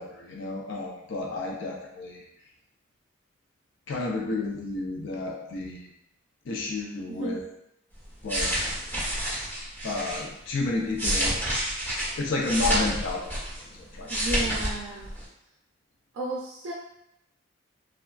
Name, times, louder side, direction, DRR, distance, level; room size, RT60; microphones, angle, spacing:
voice 1, 0.0-2.2 3.9-5.9 6.5-7.4 8.2-8.5 9.8-11.4 11.8-13.3 13.7-14.4, left 3 dB, 70° left, 0 dB, 0.4 m, -31 dB
voice 2, 7.1-7.4 8.5-8.6 14.1-15.1 16.1-16.7, right 2 dB, 90° right, -3 dB, 0.4 m, -33 dB
sound 1, 8.0-10.2 10.7-13.7 13.9-14.7 15.0-15.2, right 1 dB, 10° left, 1.0 m, -28 dB
3.3 x 2.3 x 2.3 m, 0.80 s
head